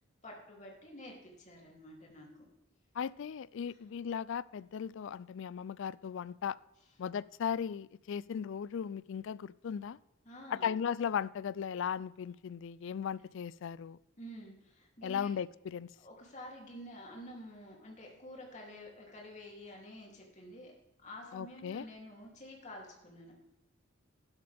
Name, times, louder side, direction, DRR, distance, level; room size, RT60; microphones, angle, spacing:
voice 1, 0.2-2.5 10.2-10.7 14.2-15.3 16.0-20.7 21.0-23.4, left 1 dB, 35° left, 3.0 m, -49 dB
voice 2, 3.0-6.6 7.0-10.0 10.5-14.0 15.0-15.9 21.3-21.9, left 7 dB, 65° left, 0.3 m, -37 dB
12.0 x 11.5 x 3.5 m
head